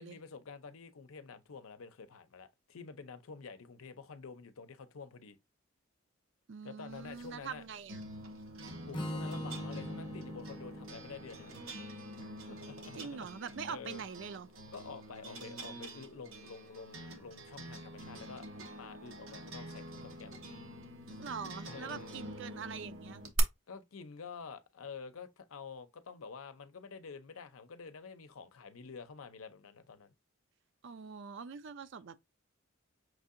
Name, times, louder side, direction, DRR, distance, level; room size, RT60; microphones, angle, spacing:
voice 1, 0.0-5.4 6.6-7.6 8.9-11.5 12.0-13.3 13.7-14.0 14.6-18.5 18.8-20.5 21.4-22.2 23.7-30.1, left 5 dB, 90° left, 0.6 m, -49 dB
voice 2, 6.5-8.0 12.9-14.5 21.2-23.2 30.8-32.2, right 6 dB, 60° right, 0.4 m, -43 dB
sound 1, 6.9-23.4, right 2 dB, 85° right, 1.0 m, -46 dB
Strum, 8.9-13.1, equal, 20° left, 0.6 m, -43 dB
6.0 x 2.7 x 2.5 m
head